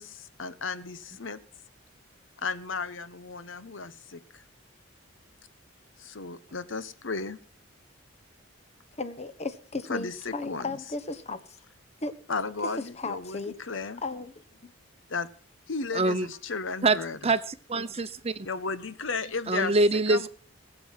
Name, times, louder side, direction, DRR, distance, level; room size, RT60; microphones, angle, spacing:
voice 1, 0.0-1.4 2.4-4.4 6.0-7.4 9.9-10.8 12.3-14.0 15.1-15.3 15.7-17.2 18.4-19.8 20.1-20.3, left 4 dB, 70° left, 13 dB, 1.1 m, -34 dB
voice 2, 9.0-11.6 12.0-12.1 12.6-13.6 14.0-14.3 14.6-14.7, left 3 dB, 35° left, 12 dB, 1.2 m, -35 dB
voice 3, 15.9-16.3 16.8-17.0 17.2-18.5 19.5-20.3, right 2 dB, 30° right, 13 dB, 0.8 m, -25 dB
20.5 x 7.8 x 5.9 m, 0.43 s
head